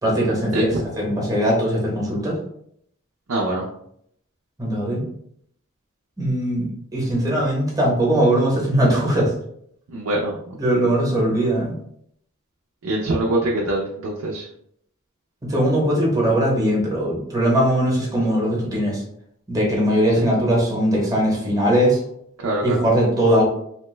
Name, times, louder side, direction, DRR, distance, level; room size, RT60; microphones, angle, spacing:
voice 1, 0.0-2.4 4.6-5.1 6.2-9.3 10.6-11.8 15.4-19.0 19.5-22.0 22.6-23.4, right 1 dB, 15° right, -3 dB, 0.9 m, -20 dB
voice 2, 3.3-3.7 9.9-10.6 12.8-14.4 20.2-20.3 22.4-22.8, right 1 dB, 70° right, -3 dB, 0.5 m, -24 dB
2.9 x 2.2 x 3.1 m, 0.71 s
head